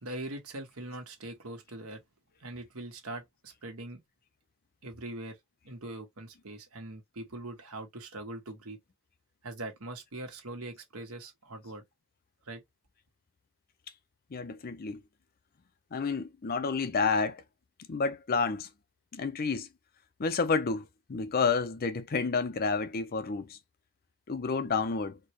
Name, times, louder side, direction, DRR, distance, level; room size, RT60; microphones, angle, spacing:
voice 1, 0.0-2.0 2.4-4.0 4.8-5.4 5.6-8.8 9.4-11.8 12.4-12.6, right 2 dB, 75° right, 1.3 m, -42 dB
voice 2, 14.3-15.0 15.9-17.4 17.9-18.7 19.1-19.7 20.2-23.6 24.3-25.2, left 4 dB, 45° left, 0.5 m, -30 dB
4.4 x 2.2 x 3.0 m
head